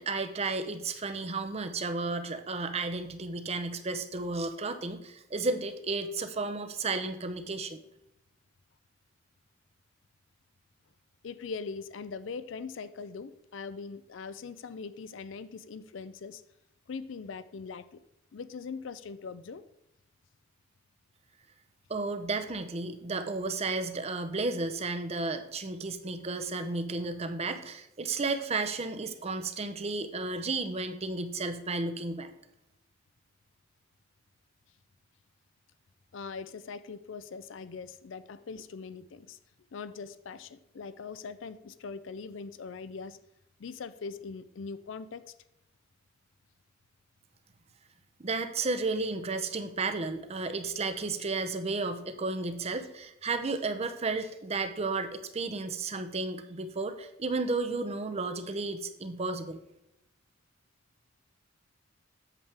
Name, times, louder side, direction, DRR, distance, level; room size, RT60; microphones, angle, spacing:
voice 1, 0.0-7.8 21.9-32.3 48.2-59.6, right 3 dB, 30° right, 9 dB, 0.6 m, -33 dB
voice 2, 11.2-16.4 16.9-18.0 18.3-19.6 36.1-39.4 39.7-43.2 43.6-45.2, left 5 dB, 70° left, 14 dB, 0.4 m, -41 dB
8.3 x 7.2 x 3.4 m, 0.86 s
head